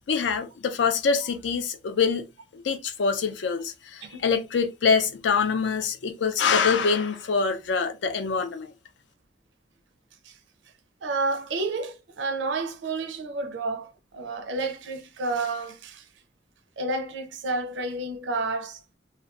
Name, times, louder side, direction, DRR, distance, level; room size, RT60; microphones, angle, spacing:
voice 1, 0.1-2.3 2.5-8.7, left 5 dB, 70° left, 0.4 m, -25 dB
voice 2, 11.0-16.1 16.8-18.8, right 3 dB, 85° right, 0.5 m, -30 dB
2.6 x 2.2 x 2.3 m
head